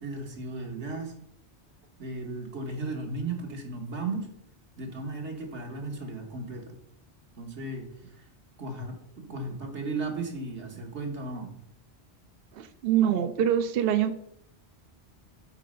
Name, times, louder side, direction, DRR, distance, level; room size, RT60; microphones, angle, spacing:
voice 1, 0.0-1.1 2.0-4.3 4.8-6.7 7.4-7.9 8.6-11.5, right 3 dB, 90° right, 1 dB, 1.8 m, -35 dB
voice 2, 12.6-14.1, right 10 dB, 65° right, 9 dB, 0.8 m, -25 dB
8.3 x 4.2 x 5.4 m, 0.74 s
omnidirectional pair, 1.2 m